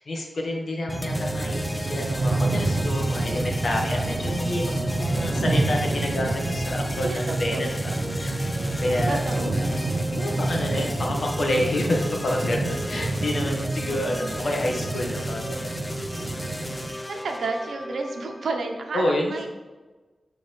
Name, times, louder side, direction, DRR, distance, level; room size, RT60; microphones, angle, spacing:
voice 1, 0.0-12.6 12.9-15.7 16.3-16.5 18.9-19.5, left 1 dB, 55° left, 0 dB, 1.5 m, -29 dB
sound 1, 0.9-18.9, left 1 dB, 15° left, 0.4 m, -36 dB
sound 2, 0.9-16.9, right 2 dB, 45° right, 0.8 m, -28 dB
voice 2, 7.0-7.7 9.1-9.6 13.9-14.3 17.1-19.5, right 3 dB, 85° right, 3 dB, 1.0 m, -31 dB
11.5 x 3.9 x 3.5 m, 1.2 s
wide cardioid pair, 130°, 0 cm